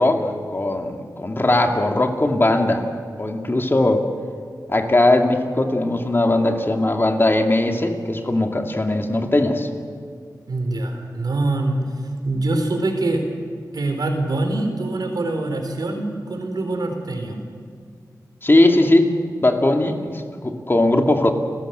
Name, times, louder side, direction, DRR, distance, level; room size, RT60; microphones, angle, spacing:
voice 1, 0.0-2.9 3.2-4.1 4.7-9.7 18.4-19.1 19.4-21.3, left 2 dB, 30° left, 3 dB, 2.3 m, -19 dB
voice 2, 10.5-11.8 12.2-13.2 13.7-17.4, right 2 dB, 70° right, 4 dB, 4.0 m, -24 dB
29.5 x 15.0 x 7.9 m, 2.1 s
cardioid pair, 60°, 7 cm